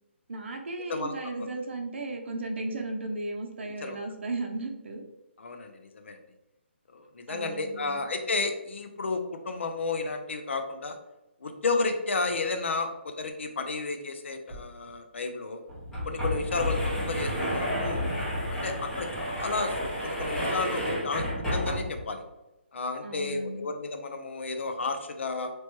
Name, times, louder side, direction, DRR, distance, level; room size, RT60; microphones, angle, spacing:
voice 1, 0.3-5.0 7.3-8.0 23.0-23.7, right 2 dB, 70° right, 3 dB, 0.6 m, -35 dB
voice 2, 5.4-6.2 6.9-11.0 11.4-15.6 16.1-16.8 17.1-18.1 18.5-22.2 22.7-25.5, left 3 dB, 75° left, 6 dB, 0.5 m, -32 dB
sound 1, 14.5-14.6 14.9-15.0 15.7-22.1, equal, 5° left, 0.6 m, -31 dB
3.0 x 2.1 x 3.0 m, 0.95 s
hypercardioid pair, 165°, 7 cm